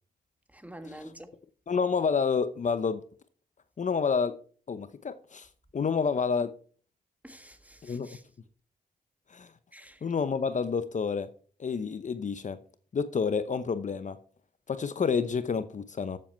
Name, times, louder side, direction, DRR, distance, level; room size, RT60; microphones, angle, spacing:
voice 1, 0.5-1.3 7.2-8.2 9.7-10.0, right 1 dB, 10° right, 1.6 m, -47 dB
voice 2, 1.7-3.0 3.8-4.4 4.7-5.5 5.7-6.5 7.8-8.1 9.3-9.5 10.0-11.3 11.6-12.6 12.9-14.2 14.7-16.2, left 5 dB, 50° left, 0.8 m, -29 dB
12.5 x 7.7 x 4.5 m
cardioid pair, 65°, 16 cm